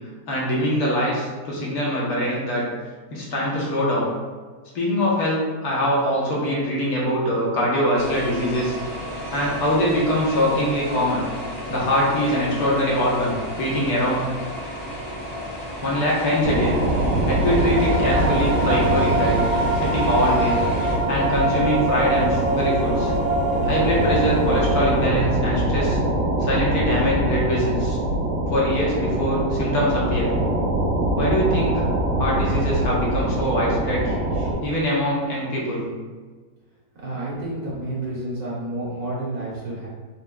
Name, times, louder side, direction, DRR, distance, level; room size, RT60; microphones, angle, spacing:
voice 1, 0.3-2.6 3.1-4.1 4.7-8.8 9.3-11.2 11.7-14.3 15.8-16.7 17.3-19.4 19.7-20.6 21.1-23.1 23.6-26.0 26.4-28.0 28.5-30.3 31.2-31.8 32.2-35.9, equal, 65° left, -5 dB, 1.4 m, -23 dB
sound 1, 8.0-21.0, equal, 30° left, 1.7 m, -33 dB
sound 2, 16.4-34.5, right 1 dB, 90° right, 1.4 m, -23 dB
sound 3, 17.3-25.4, right 2 dB, 5° right, 1.2 m, -25 dB
voice 2, 37.0-39.9, right 1 dB, 65° right, -7 dB, 1.8 m, -30 dB
4.2 x 4.1 x 2.2 m, 1.4 s
omnidirectional pair, 1.8 m